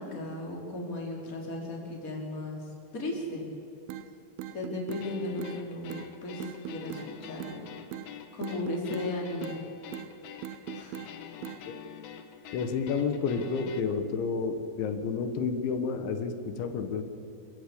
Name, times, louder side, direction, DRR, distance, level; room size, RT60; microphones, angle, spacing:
voice 1, 0.0-2.6 2.9-3.4 4.5-7.6 8.3-9.6 10.7-11.0, left 2 dB, 20° left, -1 dB, 3.9 m, -35 dB
sound 1, 3.9-4.1 4.4-5.1 5.4-5.6 5.9-6.1 6.4-7.1 7.4-7.6 7.9-8.1 8.4-9.1 9.4-9.6 9.9-10.1 10.4-11.1 11.4-11.6, right 12 dB, 80° right, 2.4 m, -39 dB
sound 2, 5.0-13.8, left 8 dB, 65° left, 1.9 m, -46 dB
voice 2, 12.5-17.0, left 5 dB, 90° left, 8 dB, 3.8 m, -30 dB
26.5 x 15.0 x 8.5 m, 3.0 s
omnidirectional pair, 5.1 m